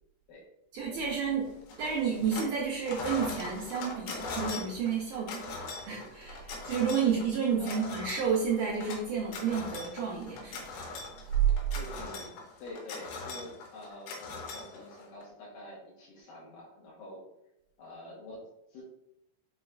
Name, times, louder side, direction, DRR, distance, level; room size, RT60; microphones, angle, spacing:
voice 1, 0.7-10.7, right 6 dB, 85° right, -4 dB, 1.7 m, -31 dB
sound 1, 1.7-2.6 2.8-15.2, left 3 dB, 90° left, 2.5 m, -41 dB
voice 2, 7.6-7.9 11.8-12.3 12.6-17.2 17.8-18.8, left 1 dB, 75° left, -5 dB, 2.4 m, -46 dB
6.2 x 2.3 x 2.2 m, 0.84 s
omnidirectional pair, 4.1 m